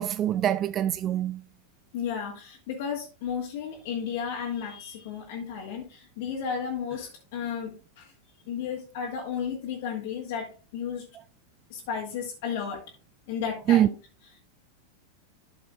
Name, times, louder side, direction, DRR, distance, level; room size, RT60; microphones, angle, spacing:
voice 1, 0.0-1.4 13.7-13.9, right 11 dB, 30° right, 0.3 m, -24 dB
voice 2, 1.9-8.1 8.5-11.1 11.7-12.8 13.3-13.9, left 7 dB, 50° left, 1.9 m, -33 dB
12.0 x 7.0 x 2.3 m
figure-of-eight pair, 90°, 0 cm